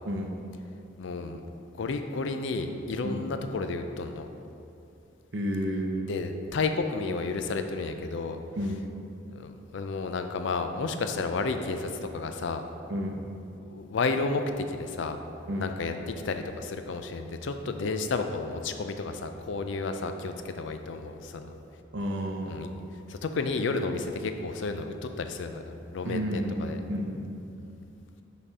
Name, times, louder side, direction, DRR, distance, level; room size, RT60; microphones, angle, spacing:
voice 1, 0.0-0.4 3.0-3.3 5.3-6.1 8.6-8.9 12.9-13.2 15.5-15.7 21.9-22.7 26.0-27.3, equal, 60° right, 2 dB, 0.6 m, -31 dB
voice 2, 1.0-1.4 1.7-4.3 6.1-8.4 9.3-12.6 13.7-15.2 15.6-21.6 22.5-22.7 23.1-26.8, left 3 dB, 70° left, 7 dB, 0.4 m, -32 dB
5.6 x 4.1 x 4.8 m, 2.7 s
head